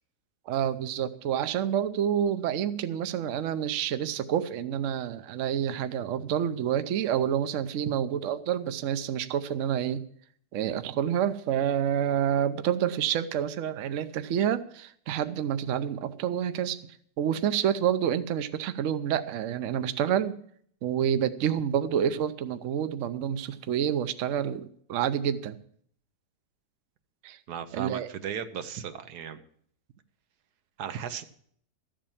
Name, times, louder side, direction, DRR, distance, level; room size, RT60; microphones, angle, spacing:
voice 1, 0.5-10.0 10.5-16.8 17.2-20.4 20.8-25.6 27.2-27.4 27.7-28.1, right 9 dB, 60° right, 11 dB, 1.0 m, -28 dB
voice 2, 27.5-29.4 30.8-31.2, right 8 dB, 90° right, 10 dB, 1.4 m, -36 dB
13.5 x 7.6 x 7.2 m, 0.62 s
omnidirectional pair, 1.7 m